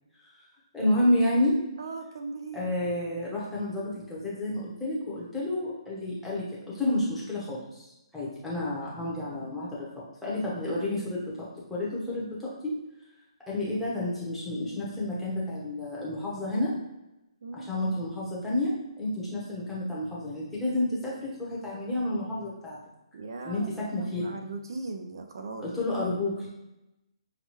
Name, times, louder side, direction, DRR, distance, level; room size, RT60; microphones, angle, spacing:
voice 1, 0.7-1.6 2.5-7.9 8.1-12.7 13.5-16.8 17.5-22.8 23.4-24.4 25.6-26.5, left 1 dB, 5° left, -8 dB, 0.8 m, -30 dB
voice 2, 1.8-2.7 17.4-17.7 23.1-25.7, right 3 dB, 50° right, 6 dB, 0.3 m, -38 dB
5.5 x 2.2 x 3.0 m, 0.92 s
hypercardioid pair, 175°, 3 cm